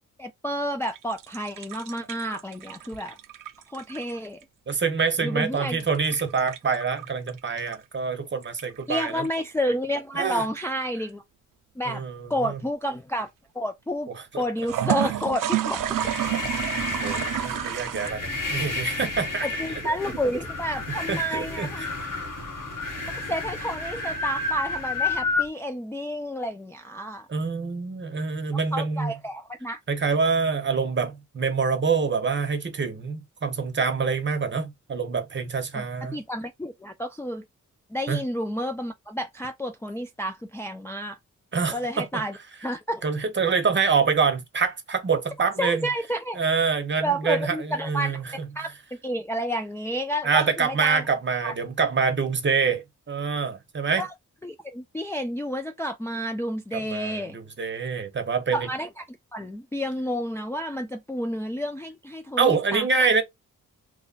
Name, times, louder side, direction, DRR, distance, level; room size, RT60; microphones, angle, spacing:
voice 1, 0.2-3.2 3.7-4.4 5.2-5.8 8.9-11.2 11.8-12.0 12.3-13.3 13.5-14.1 14.4-15.8 19.4-21.9 23.1-27.3 28.7-29.8 35.7-35.8 36.1-37.4 37.9-41.2 41.7-42.4 42.6-43.0 45.6-46.4 47.0-48.2 48.6-48.8 49.0-51.0 51.4-51.5 54.0-54.1 54.4-57.4 58.5-62.9, equal, 10° left, 0.3 m, -30 dB
sound 1, 0.8-4.4 5.7-7.8 8.4-9.3 14.6-18.1, right 11 dB, 85° right, 0.5 m, -30 dB
voice 2, 4.7-9.3 10.1-10.5 11.9-12.2 12.4-12.6 14.3-14.4 15.0-15.1 17.0-19.5 20.9-22.1 27.3-29.1 29.9-36.2 38.1-38.2 41.5-42.2 43.0-45.9 46.4-48.5 50.2-54.1 56.7-58.7 62.4-63.2, right 5 dB, 35° right, 0.8 m, -26 dB
sound 2, 15.7-25.5, left 3 dB, 80° left, 1.5 m, -31 dB
3.1 x 2.2 x 3.9 m
wide cardioid pair, 135°, 32 cm